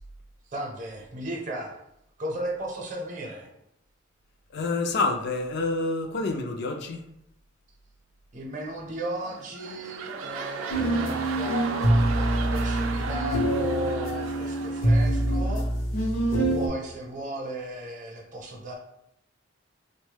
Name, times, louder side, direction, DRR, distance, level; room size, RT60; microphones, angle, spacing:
voice 1, 0.5-1.8 2.2-3.5 8.3-15.7 16.0-16.1 16.5-18.7, right 1 dB, 40° right, 0 dB, 0.7 m, -35 dB
voice 2, 4.5-7.0, left 3 dB, 60° left, 3 dB, 0.4 m, -28 dB
sound 1, 9.2-15.8 16.3-16.4, right 5 dB, 90° right, 0.4 m, -36 dB
sound 2, 10.7-16.7, right 1 dB, 80° left, 0.7 m, -25 dB
3.4 x 2.1 x 3.3 m, 0.78 s
head